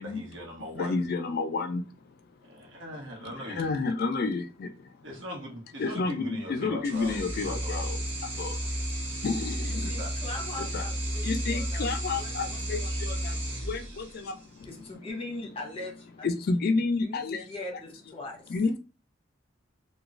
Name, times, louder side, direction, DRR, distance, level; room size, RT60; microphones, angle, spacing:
voice 1, 0.0-1.0 2.4-3.9 5.0-7.3 7.6-7.8 9.8-10.1, equal, 70° right, 0.9 m, -41 dB
voice 2, 0.7-2.1 3.2-5.0 5.8-8.6 9.2-10.1 10.7-10.8 11.2-14.7 16.2-17.5 18.5-18.8, left 4 dB, 50° left, 0.3 m, -31 dB
sound 1, 6.8-14.4, right 1 dB, 35° right, 1.0 m, -33 dB
voice 3, 9.6-11.8 12.1-12.9 14.6-16.3 17.0-18.5, left 2 dB, 30° left, 0.9 m, -41 dB
3.0 x 2.2 x 2.5 m
head